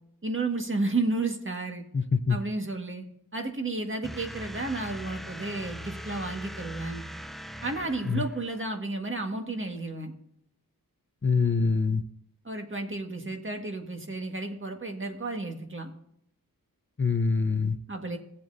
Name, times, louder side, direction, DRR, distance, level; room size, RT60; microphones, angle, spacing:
voice 1, 0.2-1.8 2.3-3.0 3.3-7.0 7.6-10.1 12.4-15.9 17.9-18.2, right 2 dB, 35° right, 3 dB, 1.8 m, -32 dB
voice 2, 1.9-2.4 8.0-8.2 11.2-12.0 17.0-17.8, left 5 dB, 35° left, 7 dB, 0.8 m, -24 dB
sound 1, 4.0-8.7, equal, ahead, 0.7 m, -41 dB
18.0 x 7.6 x 2.7 m, 0.73 s
wide cardioid pair, 80°, 35 cm